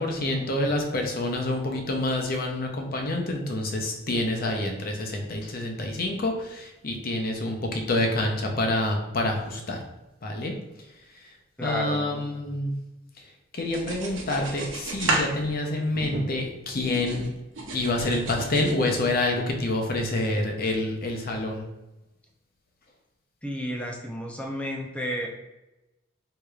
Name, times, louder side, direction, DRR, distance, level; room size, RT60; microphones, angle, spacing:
voice 1, 0.0-9.8 10.2-10.5 11.1-11.2 11.6-12.7 13.2-17.2 17.7-21.6, left 2 dB, 50° left, 2 dB, 0.6 m, -27 dB
voice 2, 11.6-12.2 23.4-25.3, equal, 5° left, 0 dB, 0.5 m, -32 dB
sound 1, 13.7-16.5 16.9-18.7, right 2 dB, 85° right, 0.7 m, -32 dB
4.8 x 2.8 x 2.3 m, 0.99 s
head